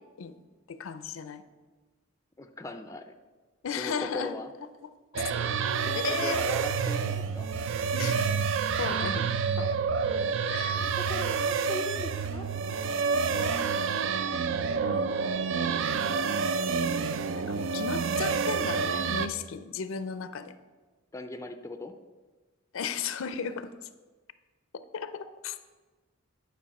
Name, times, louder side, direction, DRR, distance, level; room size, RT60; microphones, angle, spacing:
voice 1, 0.7-1.4 3.6-4.3 5.1-5.2 5.9-6.4 7.9-8.3 8.8-9.3 9.6-9.7 10.5-10.8 13.3-13.7 14.8-15.8 17.3-20.5 22.7-23.7 24.7-25.6, left 6 dB, 80° left, 12 dB, 0.5 m, -35 dB
voice 2, 2.4-3.1 3.8-4.5 5.9-7.5 10.7-12.5 21.1-22.0, left 2 dB, 15° left, 7 dB, 0.4 m, -39 dB
sound 1, 5.1-19.3, right 5 dB, 65° right, 0.4 m, -28 dB
9.8 x 5.5 x 4.1 m, 1.3 s
head